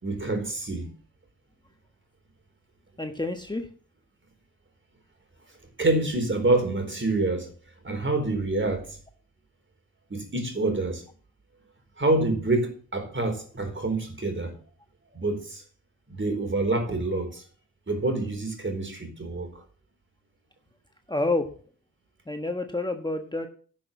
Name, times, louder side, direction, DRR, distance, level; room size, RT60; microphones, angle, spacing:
voice 1, 0.0-0.9 5.8-7.5 7.8-9.0 10.1-11.0 12.0-14.5 15.1-15.6 16.1-17.4 17.9-19.6, right 2 dB, 35° right, 4.1 m, -27 dB
voice 2, 3.0-3.7 21.1-21.5 22.3-23.5, left 2 dB, 10° left, 1.3 m, -28 dB
11.0 x 6.2 x 7.2 m
cardioid pair, 55°, 36 cm